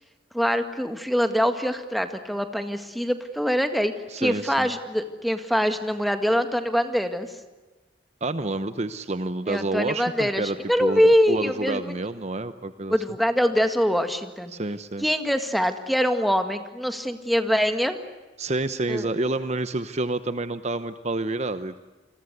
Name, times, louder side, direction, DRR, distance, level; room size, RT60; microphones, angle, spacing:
voice 1, 0.3-3.9 4.2-7.3 9.5-12.0 12.9-14.5 15.0-18.0 18.9-19.1, equal, ahead, 8 dB, 1.9 m, -24 dB
voice 2, 4.1-4.7 8.2-11.0 11.3-12.9 14.5-15.1 18.4-21.8, right 2 dB, 35° right, 11 dB, 0.9 m, -28 dB
29.0 x 22.0 x 8.2 m, 1.2 s
head